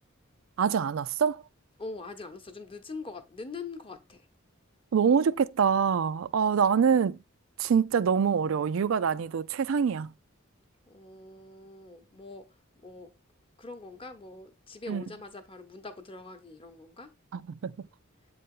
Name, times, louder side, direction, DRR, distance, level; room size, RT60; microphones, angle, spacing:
voice 1, 0.6-1.4 4.9-7.2 7.6-10.1 14.9-15.0 17.3-17.7, right 7 dB, 70° right, 0.4 m, -25 dB
voice 2, 1.8-4.2 10.9-12.5 12.8-13.1 13.6-17.1, left 3 dB, 25° left, 0.8 m, -43 dB
7.5 x 4.1 x 3.6 m
head